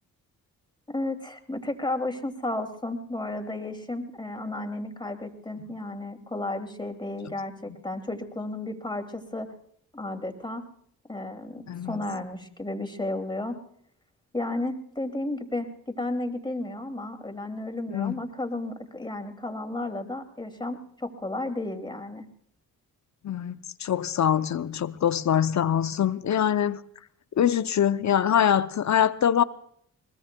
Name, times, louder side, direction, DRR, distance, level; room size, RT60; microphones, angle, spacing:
voice 1, 0.9-9.5 9.9-10.6 11.1-13.6 14.3-22.2, left 2 dB, 10° left, 2.6 m, -33 dB
voice 2, 11.7-12.0 17.9-18.2 23.2-26.8 27.3-29.4, left 9 dB, 45° left, 0.7 m, -24 dB
22.0 x 20.5 x 2.3 m
hypercardioid pair, 45°, 39 cm